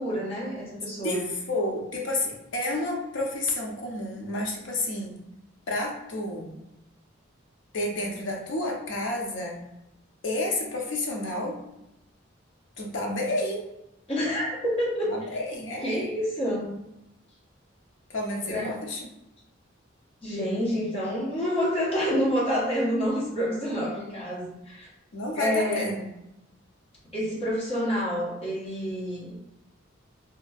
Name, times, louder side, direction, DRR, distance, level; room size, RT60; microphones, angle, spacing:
voice 1, 0.0-1.2 14.1-15.1 15.8-16.8 18.5-18.8 20.2-24.9 25.3-26.0 27.1-29.4, equal, 30° left, -6 dB, 1.0 m, -28 dB
voice 2, 1.0-5.1 5.7-6.5 7.7-9.6 10.2-11.6 12.8-13.7 15.0-16.1 18.1-19.0 25.1-26.1, left 1 dB, 70° left, 0 dB, 0.6 m, -30 dB
2.9 x 2.5 x 2.3 m, 0.88 s
head